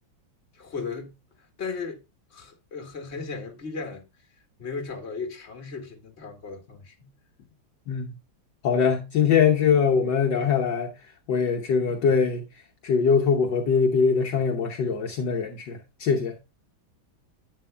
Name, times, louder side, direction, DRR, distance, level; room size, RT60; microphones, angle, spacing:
voice 1, 0.5-1.2 1.6-2.0 2.3-4.1 4.6-7.1, left 4 dB, 35° left, 1.8 m, -36 dB
voice 2, 8.6-10.9 11.3-12.4 12.8-16.3, left 6 dB, 65° left, 1.6 m, -22 dB
11.0 x 8.9 x 2.2 m
omnidirectional pair, 2.2 m